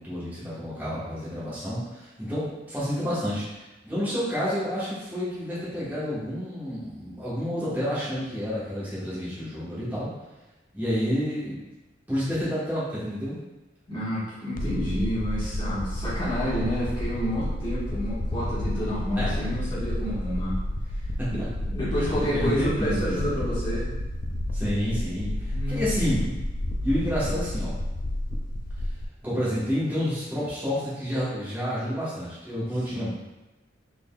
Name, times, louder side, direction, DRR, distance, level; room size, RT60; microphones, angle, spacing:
voice 1, 0.0-10.1 10.7-11.6 12.1-13.4 19.2-19.5 21.2-21.5 22.0-23.4 24.5-26.3 26.8-27.7 29.2-33.1, equal, 10° right, -11 dB, 1.1 m, -29 dB
voice 2, 13.9-20.6 21.3-23.9 25.5-26.3 27.1-27.4 32.9-33.1, equal, 25° left, -10 dB, 1.4 m, -30 dB
sound 1, 14.6-29.0, left 1 dB, 50° left, 0.3 m, -30 dB
3.6 x 3.5 x 2.2 m, 1.1 s
head